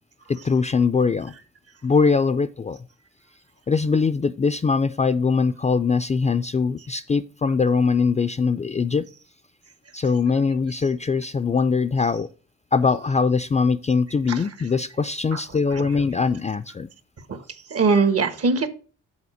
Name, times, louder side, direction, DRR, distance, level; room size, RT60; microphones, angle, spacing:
voice 1, 0.3-1.3 1.8-2.8 3.7-9.0 9.9-12.3 12.7-16.9, left 5 dB, 25° left, 10 dB, 0.4 m, -22 dB
voice 2, 17.7-18.7, right 4 dB, 55° right, 10 dB, 1.3 m, -21 dB
7.2 x 4.0 x 6.3 m, 0.38 s
supercardioid pair, 55°, 29 cm